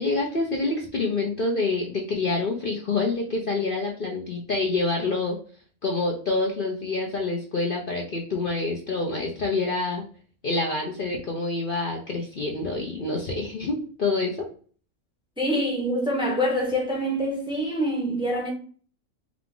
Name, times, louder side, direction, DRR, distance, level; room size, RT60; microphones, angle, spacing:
voice 1, 0.0-5.4 5.8-10.0 10.4-14.3, left 3 dB, 45° left, 0.8 m, -27 dB
voice 2, 15.4-18.5, equal, 5° right, 0.8 m, -25 dB
4.8 x 2.3 x 3.7 m
omnidirectional pair, 1.5 m